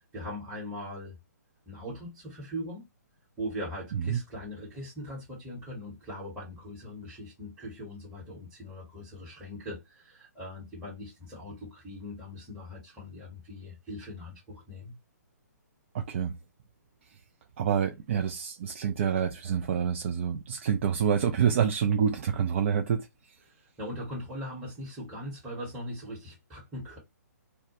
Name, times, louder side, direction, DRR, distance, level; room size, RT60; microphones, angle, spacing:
voice 1, 0.1-1.1 1.7-2.8 3.4-14.9 23.4-27.0, equal, 5° right, 1.0 m, -40 dB
voice 2, 15.9-16.3 17.6-23.1, right 8 dB, 45° right, 0.4 m, -27 dB
2.2 x 2.1 x 2.8 m
figure-of-eight pair, 130°, 10 cm